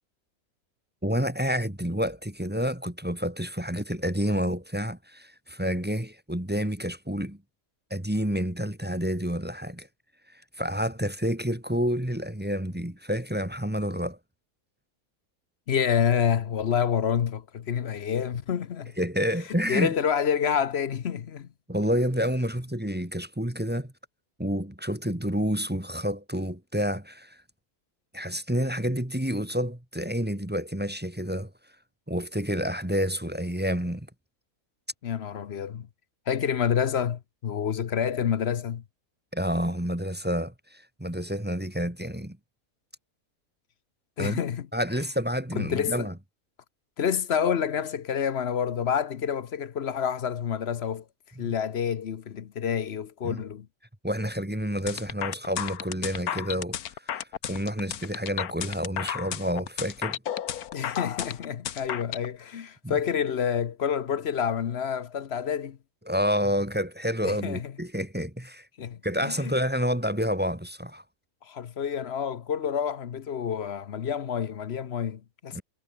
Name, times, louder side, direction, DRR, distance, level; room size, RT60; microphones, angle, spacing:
voice 1, 1.0-7.4 7.9-9.9 10.6-14.2 19.0-19.9 21.7-23.9 24.4-27.4 28.1-31.5 32.1-34.1 39.3-40.5 41.0-42.4 44.2-44.4 44.7-46.1 51.4-51.5 53.2-53.4 54.0-56.8 57.1-60.2 62.8-62.9 66.1-68.6 69.0-71.0 75.5-75.6, equal, 5° right, 1.8 m, -29 dB
voice 2, 15.7-18.9 19.5-21.5 35.0-35.9 36.3-38.8 44.2-44.7 45.5-46.1 47.0-51.0 51.4-53.7 60.7-65.8 67.2-67.7 68.8-69.5 71.4-75.6, left 8 dB, 50° left, 1.0 m, -28 dB
sound 1, 54.9-62.3, left 10 dB, 75° left, 1.5 m, -33 dB
omnidirectional pair, 1.6 m